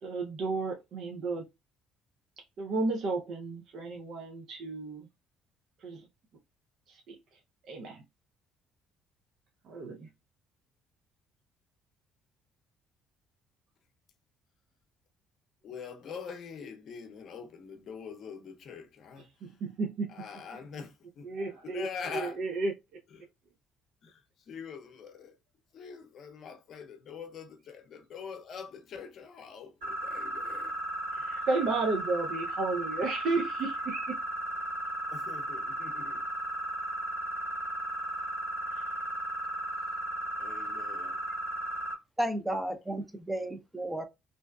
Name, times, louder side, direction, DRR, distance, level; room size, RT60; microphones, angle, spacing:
voice 1, 0.0-1.5 2.4-5.1 5.8-6.1 6.9-7.4 7.7-8.0 9.6-10.1 19.4-20.1 21.2-22.7 31.1-34.2 38.7-38.9, right 3 dB, 65° right, 0.5 m, -33 dB
voice 2, 15.6-19.6 20.1-21.3 21.6-22.5 23.1-23.3 24.0-25.4 25.7-30.8 31.1-31.3 35.1-36.3 40.4-41.2, left 6 dB, 60° left, 0.6 m, -44 dB
sound 1, 29.8-41.9, right 1 dB, 90° right, 1.4 m, -35 dB
voice 3, 42.2-44.0, right 1 dB, 10° right, 0.6 m, -33 dB
2.6 x 2.2 x 2.2 m
supercardioid pair, 75°, 0 cm